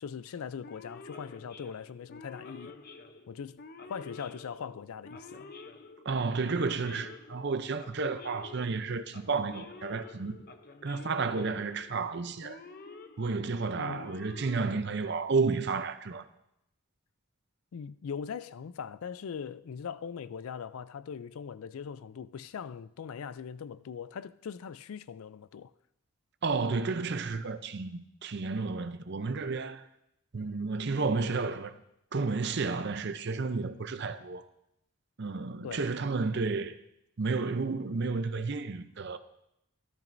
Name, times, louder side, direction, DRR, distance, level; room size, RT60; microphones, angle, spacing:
voice 1, 0.0-2.8 3.3-5.5 13.8-14.1 17.7-25.7 35.6-35.9, left 7 dB, 75° left, 0.4 m, -41 dB
Male speech man speaking / Siren, 0.6-15.3, left 3 dB, 40° left, 0.7 m, -49 dB
voice 2, 6.0-10.4 10.8-12.6 13.2-16.2 26.4-29.8 30.3-31.8 32.1-34.5 35.2-36.8 37.2-39.2, right 4 dB, 50° right, 0.6 m, -31 dB
13.5 x 13.5 x 2.6 m
head